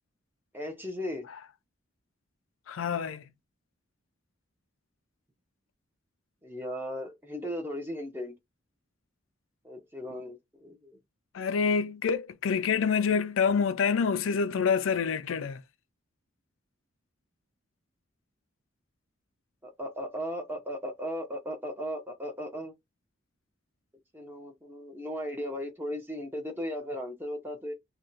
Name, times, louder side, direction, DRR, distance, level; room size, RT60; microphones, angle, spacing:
voice 1, 0.5-1.3 6.4-8.3 9.6-11.0 19.6-22.7 24.1-27.7, equal, 10° right, 0.9 m, -36 dB
voice 2, 2.7-3.2 11.3-15.6, left 6 dB, 80° left, 0.4 m, -27 dB
2.7 x 2.2 x 3.9 m
head